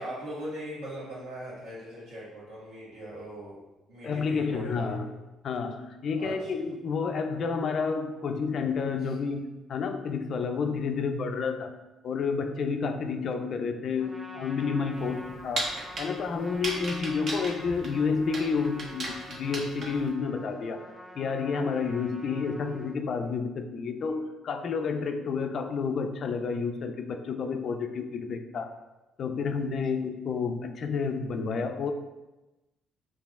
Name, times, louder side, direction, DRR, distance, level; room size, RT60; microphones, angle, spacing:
voice 1, 0.0-3.6 3.9-4.9 6.2-6.5, right 1 dB, 75° right, -8 dB, 1.4 m, -40 dB
voice 2, 4.0-5.1 5.4-11.7 12.0-28.7 29.2-31.9, left 5 dB, 55° left, 6 dB, 0.3 m, -30 dB
Trumpet, 14.0-23.0, equal, 15° right, 0.6 m, -47 dB
sound 1, 14.9-20.1, right 2 dB, 50° right, 0.7 m, -36 dB
4.6 x 2.6 x 2.3 m, 1.0 s
hypercardioid pair, 50°, 0 cm